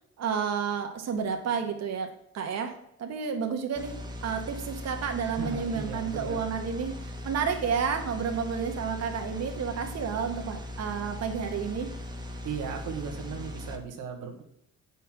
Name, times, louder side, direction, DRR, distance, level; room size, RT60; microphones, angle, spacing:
voice 1, 0.2-11.9, right 6 dB, 60° right, 4 dB, 1.4 m, -31 dB
sound 1, 3.8-13.8, left 1 dB, 15° right, 1.5 m, -39 dB
voice 2, 5.4-6.4 12.4-14.4, right 6 dB, 85° right, 2 dB, 1.5 m, -36 dB
8.2 x 5.6 x 6.0 m, 0.73 s
cardioid pair, 90°, 30 cm